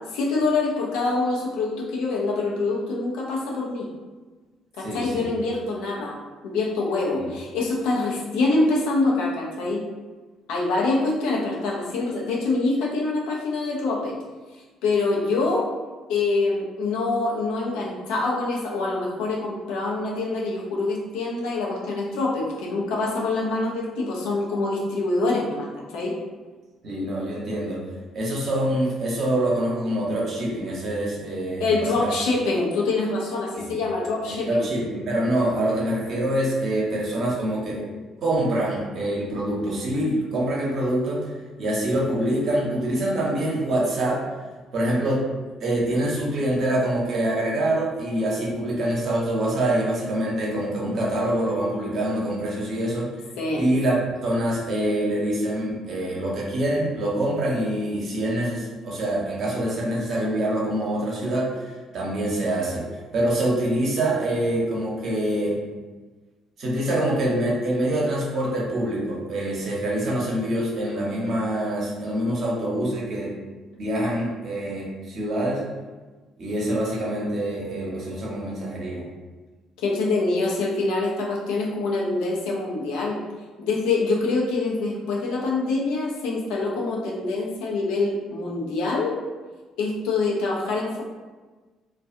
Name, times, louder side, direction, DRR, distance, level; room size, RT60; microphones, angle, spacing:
voice 1, 0.1-3.9 4.7-6.2 6.4-9.8 10.5-14.1 14.8-15.7 16.1-25.7 25.9-26.2 31.6-34.6 53.4-53.6 79.8-83.2 83.6-89.2 89.8-91.0, left 3 dB, 75° left, -3 dB, 0.5 m, -25 dB
voice 2, 4.8-5.2 7.1-7.3 26.8-27.8 28.1-32.1 34.3-37.9 38.2-44.2 44.7-45.2 45.6-53.1 53.5-53.9 54.2-62.9 63.1-65.6 66.6-73.3 73.8-75.6 76.4-79.0, right 1 dB, 60° right, -4 dB, 0.8 m, -25 dB
2.3 x 2.3 x 2.6 m, 1.3 s
hypercardioid pair, 55°, 0 cm